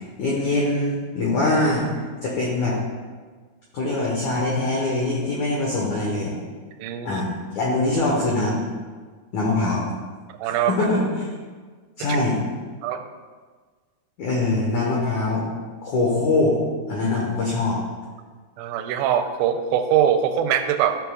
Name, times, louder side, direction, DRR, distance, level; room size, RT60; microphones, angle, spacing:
voice 1, 0.0-1.9 2.2-2.8 3.7-6.3 7.0-7.3 7.5-8.6 9.3-9.9 10.4-11.3 12.0-12.4 14.2-15.4 15.8-16.6 16.9-17.8, left 2 dB, 85° left, -4 dB, 1.7 m, -23 dB
voice 2, 6.8-7.2 10.4-10.7 12.1-12.2 12.8-13.0 18.6-21.0, right 9 dB, 90° right, 6 dB, 2.9 m, -22 dB
13.5 x 6.4 x 2.3 m, 1.5 s
omnidirectional pair, 5.2 m